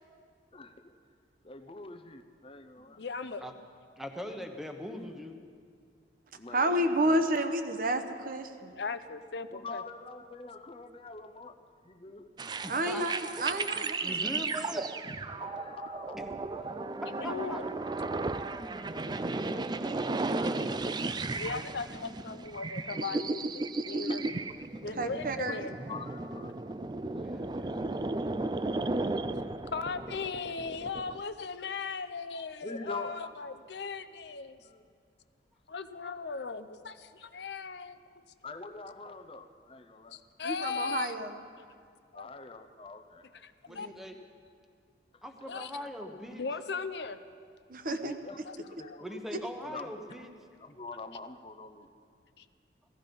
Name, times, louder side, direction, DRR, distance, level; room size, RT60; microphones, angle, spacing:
voice 1, 0.5-0.9 1.4-3.0 6.3-7.2 9.5-12.3 15.4-16.2 24.1-24.3 25.5-26.6 27.1-27.3 32.6-33.3 34.6-34.8 38.4-40.2 40.7-40.9 42.1-43.3 45.1-45.3 45.5-45.9 47.8-49.1 49.7-49.9 50.6-51.9, left 3 dB, 30° left, 9 dB, 0.7 m, -45 dB
voice 2, 3.0-3.5 8.8-9.8 17.2-17.6 21.4-22.0 22.3-24.2 24.8-25.7 29.7-34.6 35.7-38.0 40.1-41.1 42.1-42.3 43.4-43.5 43.8-43.9 45.5-45.7 46.4-47.2 48.5-48.6 48.8-49.0, left 5 dB, 70° left, 11 dB, 0.6 m, -37 dB
voice 3, 4.0-5.4 12.6-13.0 13.7-14.9 16.1-16.3 17.0-17.7 27.2-29.5 43.7-44.2 45.2-46.4 49.0-50.3, left 1 dB, ahead, 4 dB, 1.0 m, -42 dB
voice 4, 6.5-8.7 12.7-14.2 24.9-25.7 40.4-41.4 43.7-43.9 47.7-48.3, right 1 dB, 50° right, 8 dB, 0.9 m, -30 dB
sound 1, 12.4-31.2, right 3 dB, 25° right, 0.4 m, -35 dB
17.0 x 15.0 x 5.3 m, 2.2 s
head